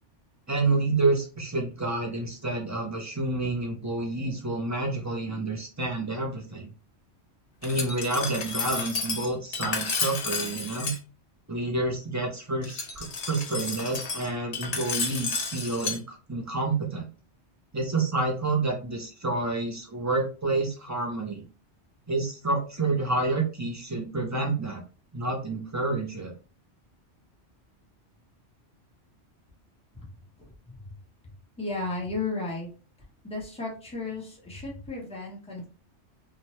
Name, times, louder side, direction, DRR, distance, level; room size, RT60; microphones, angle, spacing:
voice 1, 0.5-6.7 7.6-10.9 11.5-17.1 17.7-21.4 22.1-24.8 25.1-26.3, right 2 dB, 25° right, 0 dB, 0.4 m, -29 dB
Glass, 7.6-11.0 12.6-16.0, left 4 dB, 45° left, 0.5 m, -32 dB
voice 2, 30.4-30.8 31.6-32.7 33.2-35.7, left 3 dB, 5° left, -3 dB, 0.8 m, -34 dB
2.9 x 2.1 x 3.0 m, 0.37 s
omnidirectional pair, 1.2 m